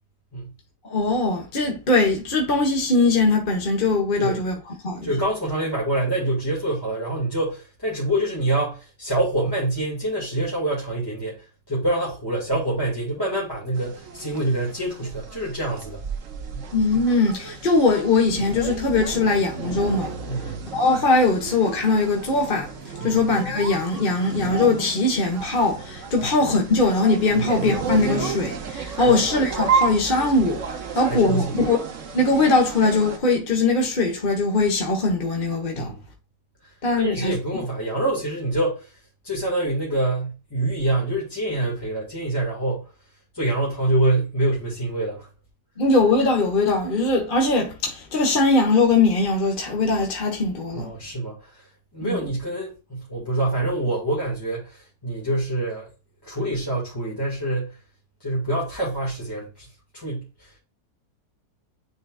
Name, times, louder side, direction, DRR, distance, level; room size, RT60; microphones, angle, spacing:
voice 1, 0.8-4.5 4.8-5.1 16.7-20.2 20.7-22.7 23.0-30.6 30.9-31.8 32.1-35.9 36.8-37.4 45.8-50.9 52.0-52.2, left 3 dB, 35° left, 1.6 m, -21 dB
voice 2, 5.0-16.0 16.5-16.7 20.3-20.5 23.0-23.2 26.2-26.4 27.3-27.5 29.0-29.2 31.0-31.6 35.7-36.0 37.0-38.9 39.2-42.9 43.3-45.3 50.7-51.6 51.9-55.9 56.2-57.8 58.2-59.7 59.9-60.6, right 1 dB, 15° left, 2.3 m, -26 dB
sound 1, 13.8-33.2, right 6 dB, 55° right, 1.3 m, -32 dB
9.9 x 4.3 x 2.5 m
omnidirectional pair, 1.7 m